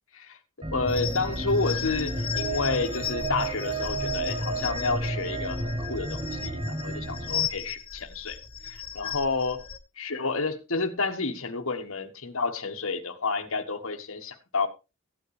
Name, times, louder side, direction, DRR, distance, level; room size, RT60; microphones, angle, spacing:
sound 1, 0.6-7.5, right 2 dB, 25° right, 1.1 m, -32 dB
voice 1, 0.7-8.4 8.6-9.6 10.0-14.7, left 4 dB, 70° left, 1.5 m, -30 dB
sound 2, 0.9-9.8, left 8 dB, 25° left, 1.4 m, -36 dB
15.0 x 9.7 x 3.2 m
head